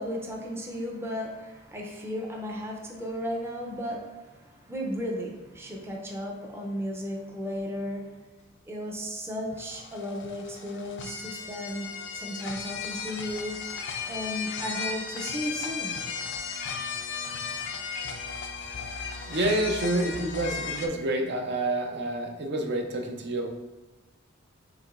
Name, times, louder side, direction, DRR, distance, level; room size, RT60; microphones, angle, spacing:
voice 1, 0.0-8.2 8.7-13.6 14.1-16.0, equal, 10° right, -1 dB, 0.6 m, -35 dB
sound 1, 9.5-20.9, left 5 dB, 60° left, 0.4 m, -36 dB
voice 2, 19.2-23.5, right 1 dB, 55° right, 3 dB, 0.6 m, -28 dB
4.8 x 3.4 x 2.5 m, 1.2 s
head